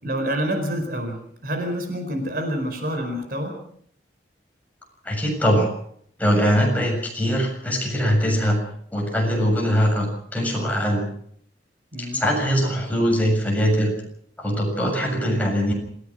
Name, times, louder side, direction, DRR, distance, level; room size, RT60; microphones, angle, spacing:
voice 1, 0.0-3.6 11.9-12.2, equal, 55° right, 5 dB, 4.6 m, -27 dB
voice 2, 5.0-5.7 6.2-8.6 8.9-11.1 12.0-13.9 14.4-15.7, equal, 10° left, -1 dB, 7.2 m, -22 dB
27.5 x 16.5 x 6.3 m, 0.65 s
head